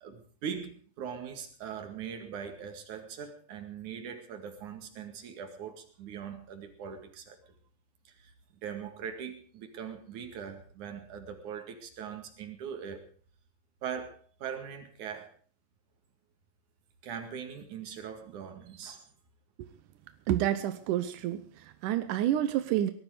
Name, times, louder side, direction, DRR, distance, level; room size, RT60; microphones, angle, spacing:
voice 1, 0.0-7.4 8.0-8.3 8.6-13.1 13.8-15.3 17.0-19.0, right 7 dB, 50° right, 6 dB, 3.2 m, -41 dB
voice 2, 20.3-22.9, right 12 dB, 75° right, 10 dB, 1.9 m, -29 dB
19.5 x 12.0 x 5.0 m, 0.44 s
omnidirectional pair, 4.8 m